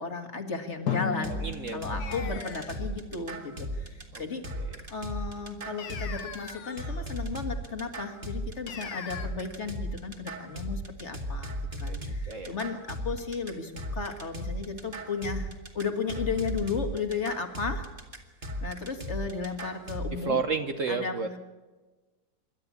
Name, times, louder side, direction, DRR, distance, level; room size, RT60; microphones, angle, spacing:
voice 1, 0.0-1.4 1.7-4.4 4.9-17.9 18.6-20.4 20.9-21.4, left 5 dB, 40° left, 5 dB, 2.2 m, -34 dB
Drum, 0.9-3.8, left 7 dB, 65° left, 2.5 m, -36 dB
sound 1, 1.2-20.1, equal, 30° right, 2.4 m, -36 dB
voice 2, 1.3-1.8 4.1-4.2 4.5-4.8 11.8-12.5 20.2-21.3, right 4 dB, 50° right, 8 dB, 1.2 m, -32 dB
sound 2, 2.0-2.9 5.8-7.1 8.7-9.3, left 7 dB, 85° left, 2.0 m, -41 dB
27.5 x 12.5 x 8.4 m, 1.2 s
omnidirectional pair, 2.0 m